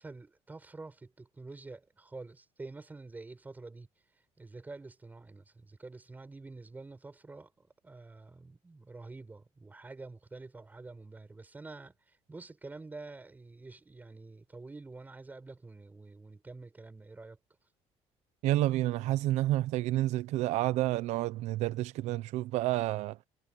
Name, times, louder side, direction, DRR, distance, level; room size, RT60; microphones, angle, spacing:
voice 1, 0.0-3.9 4.4-17.4, right 3 dB, 15° right, 7.3 m, -48 dB
voice 2, 18.4-23.2, right 15 dB, 80° right, 0.9 m, -29 dB
cardioid pair, 150°, 11 cm